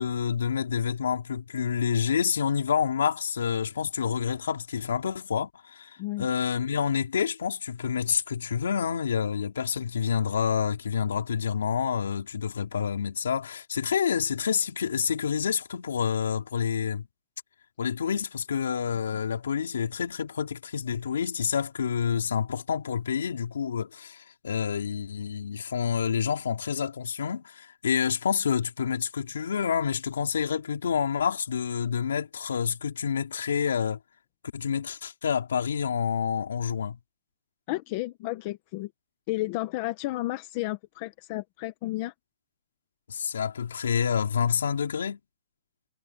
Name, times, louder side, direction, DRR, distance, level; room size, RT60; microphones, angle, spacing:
voice 1, 0.0-17.1 17.8-34.0 34.5-37.0 43.1-45.2, left 7 dB, 65° left, 4.4 m, -28 dB
voice 2, 37.7-38.9 39.3-42.1, left 19 dB, 25° left, 0.9 m, -32 dB
hypercardioid pair, 175°, 0 cm